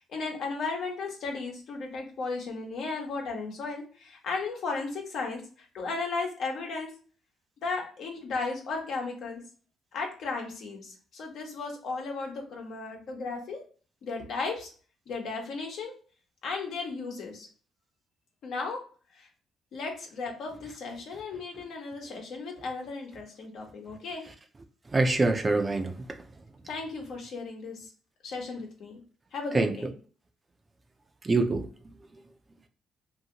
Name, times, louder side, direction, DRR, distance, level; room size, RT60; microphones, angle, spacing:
voice 1, 0.1-6.9 7.6-9.4 9.9-13.6 14.0-14.7 15.1-15.9 16.4-17.5 18.4-18.8 19.1-19.3 19.7-24.2 26.7-27.9 28.2-29.0 29.3-29.9, left 4 dB, 70° left, 1 dB, 1.0 m, -35 dB
voice 2, 24.9-26.2 29.5-29.7 31.2-31.7, right 3 dB, 25° right, 7 dB, 0.4 m, -25 dB
2.8 x 2.7 x 2.8 m, 0.40 s
cardioid pair, 90°, 0 cm